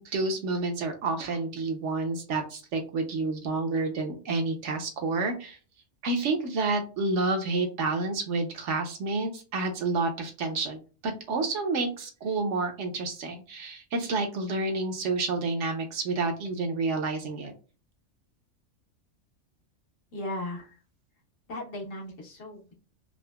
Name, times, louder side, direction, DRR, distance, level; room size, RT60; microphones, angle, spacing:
voice 1, 0.0-5.6 6.0-17.5, right 3 dB, 75° right, 4 dB, 1.0 m, -29 dB
voice 2, 20.1-20.8 21.5-22.7, left 1 dB, 80° left, -1 dB, 1.4 m, -37 dB
3.7 x 2.0 x 2.2 m, 0.35 s
omnidirectional pair, 1.3 m